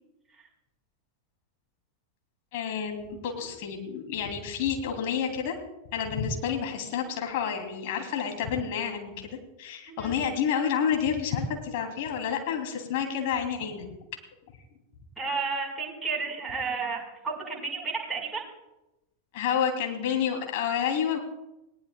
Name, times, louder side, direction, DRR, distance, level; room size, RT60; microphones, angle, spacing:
voice 1, 2.5-5.6 5.9-13.9 19.3-21.2, left 7 dB, 50° left, 3 dB, 2.7 m, -29 dB
voice 2, 15.2-18.4, right 4 dB, 10° right, -1 dB, 4.5 m, -32 dB
20.0 x 19.0 x 2.2 m, 0.93 s
figure-of-eight pair, 90°, 0 cm